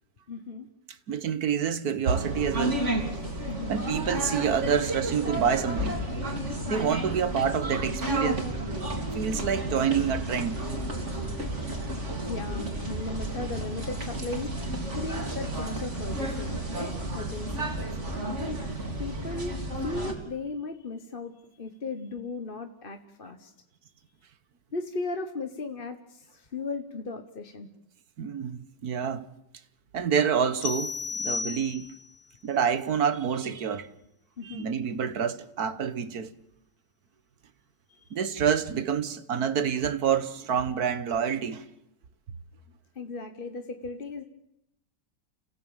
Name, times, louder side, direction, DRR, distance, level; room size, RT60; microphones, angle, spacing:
voice 1, 0.3-0.7 3.5-3.8 6.7-6.9 12.3-14.5 14.9-16.6 17.1-17.7 18.5-18.6 19.0-23.5 24.7-27.7 34.4-34.7 37.9-38.2 42.9-44.2, left 3 dB, 35° left, 1.3 m, -36 dB
voice 2, 1.1-2.9 3.7-6.0 6.7-8.5 9.0-10.6 28.2-29.3 29.9-31.9 32.4-33.9 34.4-36.3 38.1-41.6, right 7 dB, 60° right, 1.6 m, -27 dB
sound 1, 2.0-20.1, right 1 dB, 40° right, 3.5 m, -32 dB
sound 2, 30.6-32.1, left 5 dB, 80° left, 2.0 m, -33 dB
29.5 x 16.5 x 9.0 m
omnidirectional pair, 1.9 m